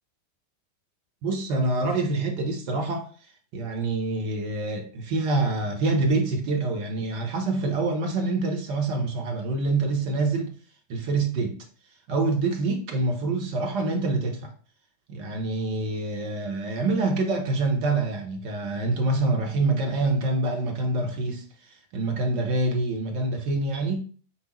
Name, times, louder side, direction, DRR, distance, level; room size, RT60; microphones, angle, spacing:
voice 1, 1.2-3.1 3.5-10.5 10.9-11.6 12.1-14.5 15.1-24.0, right 2 dB, 45° right, 0.9 m, -26 dB
3.5 x 2.7 x 3.1 m
figure-of-eight pair, 90°, 0 cm